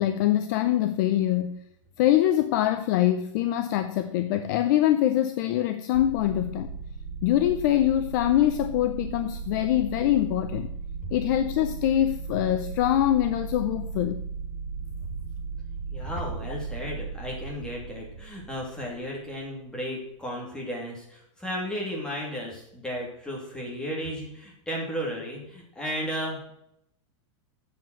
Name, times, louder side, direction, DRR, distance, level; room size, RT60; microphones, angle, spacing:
voice 1, 0.0-1.6 2.0-6.7 7.2-10.7 11.1-14.2, left 12 dB, 40° left, 0.6 m, -24 dB
sound 1, 5.9-19.3, right 5 dB, 75° right, 2.2 m, -36 dB
voice 2, 15.9-26.5, equal, 5° left, 2.7 m, -34 dB
7.8 x 7.7 x 7.7 m
supercardioid pair, 170°, 16 cm